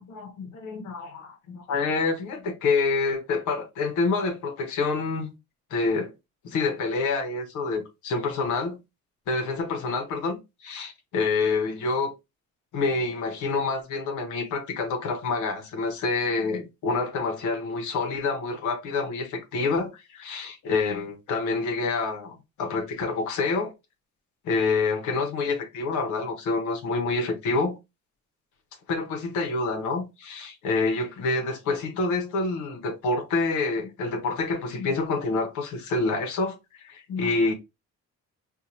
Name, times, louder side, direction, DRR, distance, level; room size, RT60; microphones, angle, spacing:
voice 1, 0.0-5.3 5.7-6.1 6.4-8.8 9.3-12.1 12.7-23.7 24.4-27.8 28.9-37.5, left 3 dB, 80° left, 0.8 m, -27 dB
4.4 x 2.2 x 2.7 m
cardioid pair, 90°, 30 cm